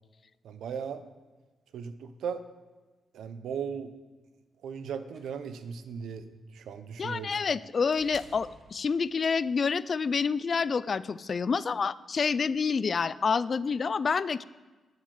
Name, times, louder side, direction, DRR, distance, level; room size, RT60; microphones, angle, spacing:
voice 1, 0.4-1.0 1.7-2.4 3.1-3.9 4.6-6.3 6.5-7.4, right 7 dB, 85° right, 11 dB, 0.7 m, -37 dB
sound 1, 5.1-9.4 10.6-10.7, right 3 dB, 60° right, 1.4 m, -56 dB
voice 2, 7.0-14.4, left 5 dB, 50° left, 18 dB, 0.3 m, -28 dB
9.5 x 7.8 x 4.8 m, 1.3 s
cardioid pair, 80°, 0 cm